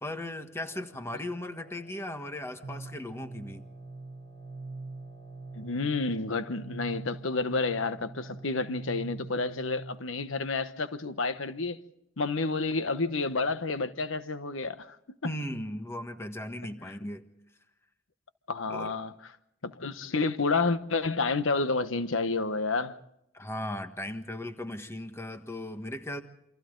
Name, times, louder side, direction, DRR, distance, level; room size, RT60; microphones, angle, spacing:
voice 1, 0.0-3.6 15.2-17.2 18.7-18.9 23.3-26.2, left 1 dB, 15° left, 1.5 m, -37 dB
Wind instrument woodwind instrument, 0.6-9.2, equal, 30° left, 6.1 m, -58 dB
sound 1, 2.6-10.2, right 3 dB, 55° right, 1.0 m, -43 dB
voice 2, 5.5-11.8 12.2-15.0 16.8-16.9 18.5-19.1 19.6-23.0, left 3 dB, 75° left, 1.1 m, -30 dB
28.5 x 26.0 x 3.9 m
head